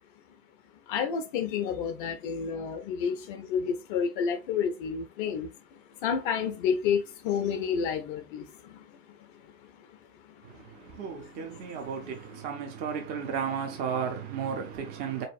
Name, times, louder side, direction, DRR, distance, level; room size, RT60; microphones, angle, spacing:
voice 1, 0.9-5.5 6.0-8.9 9.2-9.3 11.4-11.8, left 7 dB, 40° left, 0.4 m, -30 dB
voice 2, 10.4-15.3, right 7 dB, 25° right, 0.5 m, -34 dB
3.8 x 2.6 x 2.5 m
figure-of-eight pair, 85°, 41 cm